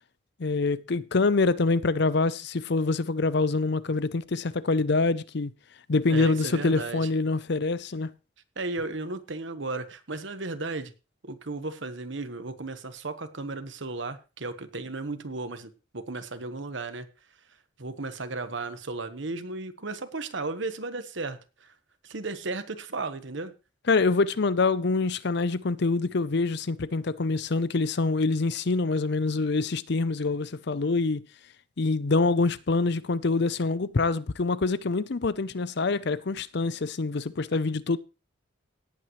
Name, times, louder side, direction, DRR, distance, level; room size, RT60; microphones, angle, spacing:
voice 1, 0.4-5.5 5.9-8.1 23.9-31.2 31.8-38.0, left 3 dB, 55° left, 0.6 m, -25 dB
voice 2, 6.1-7.1 8.6-10.9 11.2-17.1 17.8-21.7 22.0-23.5, right 3 dB, 65° right, 1.2 m, -35 dB
17.5 x 8.7 x 3.1 m
head